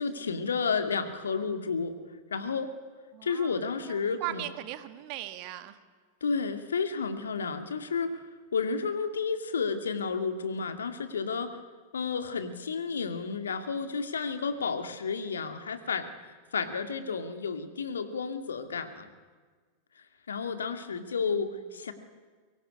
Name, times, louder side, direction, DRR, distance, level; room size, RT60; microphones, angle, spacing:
voice 1, 0.0-1.9 2.3-2.7 3.2-4.4 6.2-8.2 8.5-11.6 11.9-19.1 20.0-21.9, left 5 dB, 70° left, 8 dB, 2.3 m, -31 dB
voice 2, 3.1-5.8 21.2-21.5, right 14 dB, 45° right, 10 dB, 2.0 m, -39 dB
23.5 x 22.5 x 9.8 m, 1.5 s
figure-of-eight pair, 90°, 0 cm